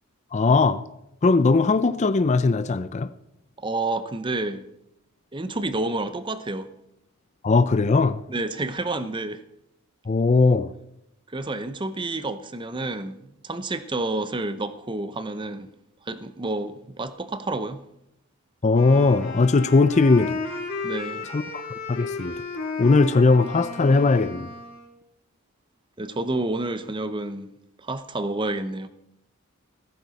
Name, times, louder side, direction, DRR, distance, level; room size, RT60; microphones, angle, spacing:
voice 1, 0.3-0.8 1.2-3.1 7.4-8.2 10.1-10.7 18.6-20.4 21.3-21.6 21.9-22.4 22.8-24.5, left 3 dB, 30° left, 0.4 m, -19 dB
voice 2, 3.6-4.6 5.3-6.7 8.3-9.4 11.3-15.7 16.1-17.8 20.8-21.3 26.0-27.5 27.8-28.9, right 2 dB, 20° right, 0.7 m, -29 dB
Wind instrument woodwind instrument, 18.7-24.9, left 3 dB, 60° left, 4.4 m, -34 dB
15.0 x 14.0 x 4.1 m
head